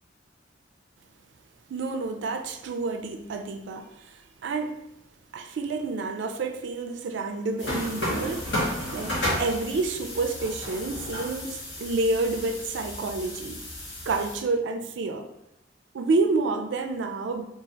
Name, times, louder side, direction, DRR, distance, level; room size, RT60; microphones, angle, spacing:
voice 1, 1.7-4.8 5.3-8.6 8.9-13.6 14.1-15.3 15.9-17.4, right 3 dB, 70° right, 6 dB, 0.3 m, -29 dB
sound 1, 7.6-14.4, left 1 dB, 75° left, 1.1 m, -33 dB
2.9 x 2.4 x 2.7 m, 0.85 s
head